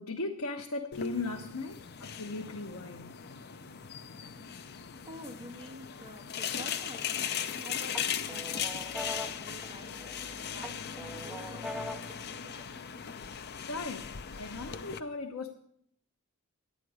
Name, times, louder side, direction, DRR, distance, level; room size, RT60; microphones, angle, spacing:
voice 1, 0.0-3.3 13.7-15.5, left 3 dB, 80° left, 0.9 m, -38 dB
sound 1, 0.9-15.0, left 8 dB, 50° left, 0.5 m, -38 dB
voice 2, 4.7-7.2 7.6-12.8, equal, 20° right, 1.5 m, -50 dB
sound 2, 6.9-7.5 7.9-10.2 10.6-12.2, left 1 dB, ahead, 0.5 m, -42 dB
11.0 x 9.3 x 4.8 m
head